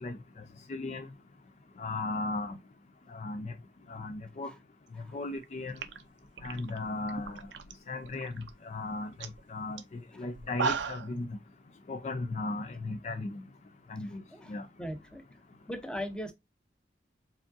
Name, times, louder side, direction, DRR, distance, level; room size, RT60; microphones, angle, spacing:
voice 1, 0.7-1.1 1.8-2.5 3.1-3.5 3.9-4.5 5.1-5.7 6.4-7.4 7.9-8.3 8.6-9.1 9.5-9.8 10.2-11.3 11.9-13.4 13.9-14.2 14.5-14.6, left 2 dB, 40° left, 0.4 m, -36 dB
sound 1, 5.3-5.4 5.7-7.7 8.0-8.5 8.9-9.0 9.2-9.4 9.8-9.9 10.3-11.1, right 5 dB, 85° right, 0.6 m, -35 dB
voice 2, 14.0-15.2 15.7-16.3, equal, 5° left, 0.7 m, -40 dB
4.8 x 3.5 x 2.6 m
head